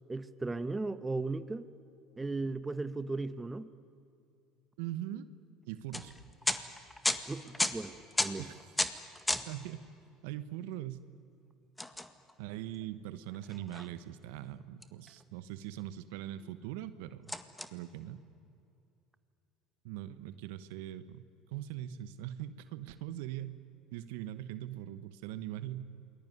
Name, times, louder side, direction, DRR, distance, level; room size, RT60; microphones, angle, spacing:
voice 1, 0.1-1.7 2.2-3.7 7.3-8.5, right 3 dB, 15° right, 13 dB, 1.3 m, -36 dB
voice 2, 4.8-5.3 5.7-6.1 8.4-8.5 9.5-9.8 10.2-11.0 12.4-17.3 17.7-18.2 19.8-23.6 23.9-25.9, right 12 dB, 75° right, 14 dB, 1.2 m, -41 dB
sound 1, 5.9-9.6 9.9-10.0 11.8-12.8 13.3-13.9 14.8-15.5 16.0-16.1 16.4-16.6 17.3-17.7, left 1 dB, 10° left, 1.8 m, -35 dB
28.5 x 21.0 x 9.5 m, 2.6 s
hypercardioid pair, 75°, 0 cm